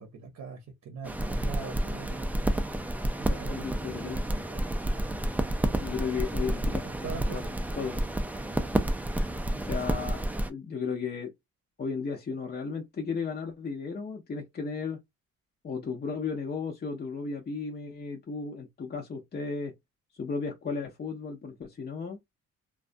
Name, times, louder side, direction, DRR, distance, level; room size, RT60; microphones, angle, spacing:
voice 1, 0.0-2.3 3.2-4.2 4.5-4.6 6.0-7.5, right 5 dB, 60° right, 0.7 m, -43 dB
sound 1, 1.0-10.5, right 1 dB, 5° right, 0.3 m, -30 dB
voice 2, 3.3-4.3 5.8-7.4 7.8-8.0 9.6-10.2 10.5-11.3 11.8-15.0 15.6-19.7 20.2-22.2, left 5 dB, 35° left, 0.6 m, -35 dB
2.4 x 2.3 x 2.5 m
cardioid pair, 90°, 30 cm